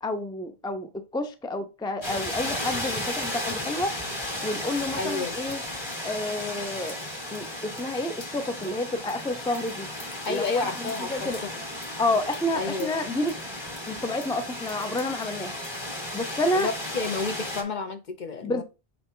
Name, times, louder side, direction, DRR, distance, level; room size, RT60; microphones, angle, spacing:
voice 1, 0.0-3.9 4.4-5.6 6.0-7.0 7.3-9.9 10.3-10.6 11.1-11.4 12.0-13.3 13.9-15.6 16.1-16.7 18.4-18.6, left 1 dB, 5° left, 0.4 m, -29 dB
sound 1, 2.0-17.6, left 1 dB, 25° left, 1.4 m, -34 dB
voice 2, 5.0-5.4 10.3-11.5 12.5-12.9 16.5-18.6, left 4 dB, 50° left, 0.8 m, -31 dB
7.9 x 3.2 x 3.8 m
omnidirectional pair, 1.1 m